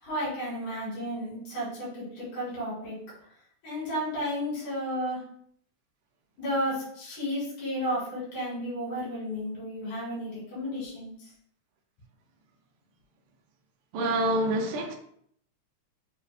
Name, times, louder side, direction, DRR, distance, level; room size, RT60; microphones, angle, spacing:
voice 1, 0.0-3.0 3.6-5.2 6.4-11.3, equal, 85° left, 3.6 m, -33 dB
voice 2, 13.9-14.9, right 1 dB, 80° right, 1.2 m, -26 dB
6.3 x 2.4 x 3.4 m
omnidirectional pair, 3.5 m